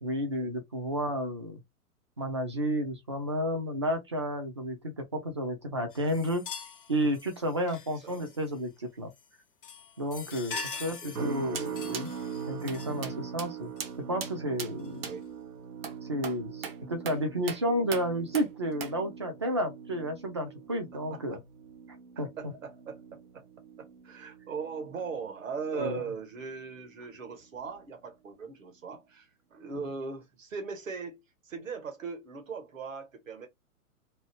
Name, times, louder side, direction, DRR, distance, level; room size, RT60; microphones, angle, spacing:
voice 1, 0.0-1.6 2.2-6.4 6.9-9.1 10.0-12.1 12.5-13.7 14.1-15.1 16.1-21.4 22.2-22.3 25.7-26.0, equal, 20° right, 0.4 m, -31 dB
sound 1, 5.9-8.6 9.1-9.4 9.6-13.1 13.8-13.9 14.8-15.0, left 5 dB, 40° left, 0.5 m, -43 dB
voice 2, 10.5-11.6 15.0-15.2 21.1-21.2 22.4-23.5 23.8-33.5, right 5 dB, 60° right, 1.3 m, -40 dB
sound 2, 11.1-26.4 26.7-27.1 27.6-27.8, right 6 dB, 80° right, 0.9 m, -42 dB
sound 3, 11.5-11.7 11.9-12.1 12.7-12.8 13.0-13.1 13.4-13.5 13.8-13.9 14.2-14.3 14.6-14.7 15.0-15.1 15.8-16.0 16.2-16.4 16.6-16.8 17.1-17.2 17.5-17.6 17.9-18.0 18.3-18.5 18.8-18.9, right 6 dB, 40° right, 0.8 m, -37 dB
2.7 x 2.5 x 2.9 m
figure-of-eight pair, 115°, 45 cm